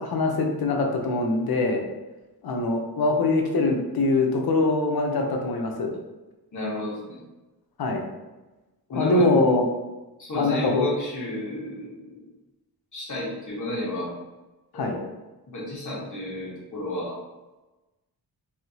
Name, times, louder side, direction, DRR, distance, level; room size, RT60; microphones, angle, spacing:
voice 1, 0.0-1.8 2.4-5.9 7.8-8.0 8.9-9.7 10.3-10.9 14.7-15.0, left 2 dB, 70° left, 2 dB, 0.7 m, -23 dB
voice 2, 6.5-7.2 8.9-9.3 10.2-12.3 12.9-14.1 14.7-15.1 15.5-17.2, left 1 dB, 50° left, -6 dB, 1.3 m, -32 dB
3.5 x 2.6 x 2.8 m, 1.1 s
wide cardioid pair, 110°, 39 cm